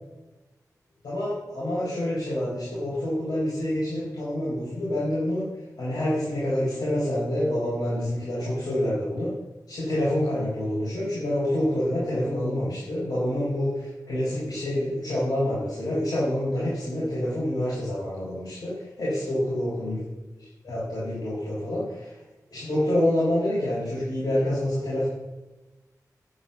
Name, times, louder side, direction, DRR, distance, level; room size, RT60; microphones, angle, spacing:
voice 1, 1.0-5.5 5.8-9.3 9.7-20.0 20.3-22.1 22.5-25.1, left 1 dB, 90° left, -9 dB, 4.8 m, -27 dB
9.9 x 9.5 x 7.1 m, 1.1 s
wide cardioid pair, 95°, 7 cm